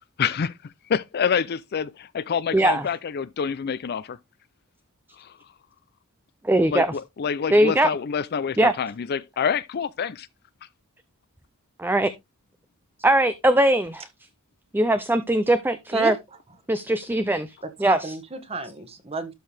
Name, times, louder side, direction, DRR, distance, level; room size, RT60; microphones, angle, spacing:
voice 1, 0.2-0.6 0.9-4.2 5.2-5.3 6.7-10.3, left 7 dB, 45° left, 0.4 m, -27 dB
voice 2, 2.5-2.9 6.4-6.9 7.5-7.9 8.6-8.7 11.8-12.1 13.0-14.1 14.7-16.1 16.7-17.5 17.8-18.0, right 1 dB, 10° right, 0.5 m, -20 dB
voice 3, 17.6-19.3, right 2 dB, 25° right, 1.5 m, -32 dB
12.0 x 4.6 x 3.4 m
head